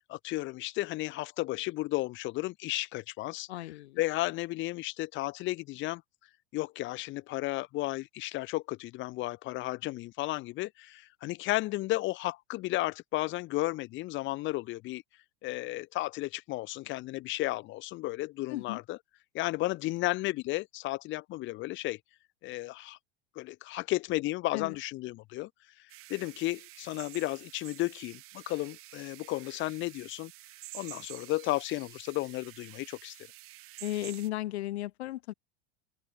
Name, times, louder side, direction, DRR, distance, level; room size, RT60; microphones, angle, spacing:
voice 1, 0.1-3.5 4.0-6.0 6.5-15.0 15.4-19.0 19.3-22.0 22.4-23.0 23.4-25.5 25.8-30.3 30.7-33.3, left 19 dB, 35° left, 0.7 m, -33 dB
voice 2, 3.5-4.0 18.5-18.8 24.5-24.7 33.8-35.3, left 15 dB, 80° left, 1.0 m, -35 dB
sound 1, 25.9-34.3, right 18 dB, 40° right, 2.2 m, -49 dB
open air
supercardioid pair, 120°, 32 cm